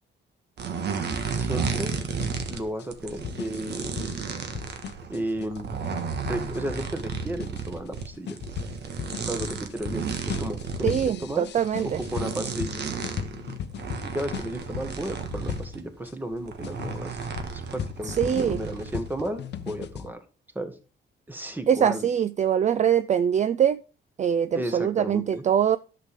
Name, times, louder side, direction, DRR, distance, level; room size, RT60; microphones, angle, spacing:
sound 1, 0.6-2.6 2.9-15.8 16.3-19.3 19.5-19.8, right 6 dB, 60° right, 1.5 m, -33 dB
voice 1, 1.3-1.9 2.5-3.9 5.1-5.7 6.3-8.4 9.2-11.5 11.8-12.8 13.8-17.2 17.5-20.2 20.5-20.8 21.3-22.1 24.5-25.4, right 1 dB, 10° right, 1.5 m, -33 dB
sound 2, 1.6-16.1 16.6-20.1, left 8 dB, 60° left, 0.7 m, -37 dB
voice 2, 10.8-12.0 18.0-18.6 21.7-23.8 24.2-25.8, right 9 dB, 40° right, 0.4 m, -23 dB
10.5 x 6.7 x 3.6 m
cardioid pair, 105°, 20 cm